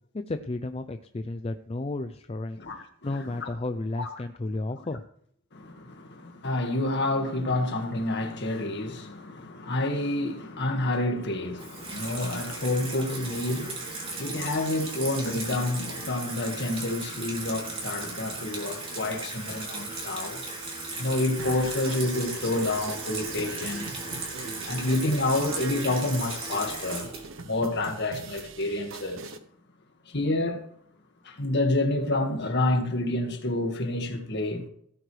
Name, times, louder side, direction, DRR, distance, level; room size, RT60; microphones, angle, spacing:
voice 1, 0.3-5.0, left 2 dB, 25° left, 0.5 m, -33 dB
voice 2, 2.6-3.5 4.0-4.1 5.5-20.4 21.0-23.9 24.7-27.1 27.4-29.3 30.1-30.6 31.2-34.6, left 2 dB, 50° left, 1.9 m, -28 dB
Water tap faucet / Sink (filling or washing), 11.6-28.3, right 3 dB, 25° right, 3.2 m, -36 dB
sound 1, 21.4-29.4, right 4 dB, 60° right, 0.9 m, -42 dB
17.0 x 9.3 x 3.3 m
head